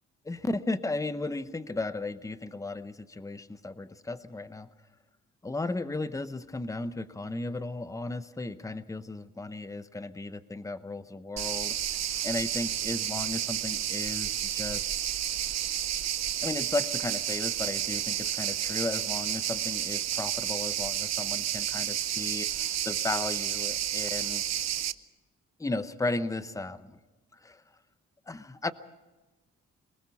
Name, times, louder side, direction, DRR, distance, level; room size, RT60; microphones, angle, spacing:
voice 1, 0.2-4.7 5.4-11.8 12.2-14.9 16.4-24.4 25.6-27.0 27.3-27.6 28.3-28.7, left 2 dB, 10° left, 12 dB, 0.8 m, -35 dB
sound 1, 11.4-24.9, right 11 dB, 60° right, 0.7 m, -31 dB
23.5 x 19.5 x 5.8 m, 1.1 s
cardioid pair, 115°, 30 cm